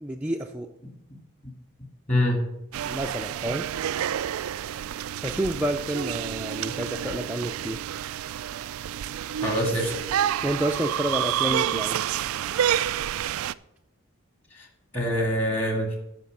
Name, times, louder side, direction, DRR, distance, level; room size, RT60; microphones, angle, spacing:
voice 1, 0.0-0.7 2.9-3.7 5.2-7.8 10.4-12.0, right 1 dB, 5° right, 0 dB, 0.4 m, -29 dB
voice 2, 2.1-2.4 9.4-9.9 14.5-14.7 14.9-16.0, equal, 25° left, 1 dB, 1.7 m, -25 dB
sound 1, 2.7-13.5, right 10 dB, 80° right, 0.3 m, -29 dB
9.4 x 5.6 x 7.3 m, 0.83 s
head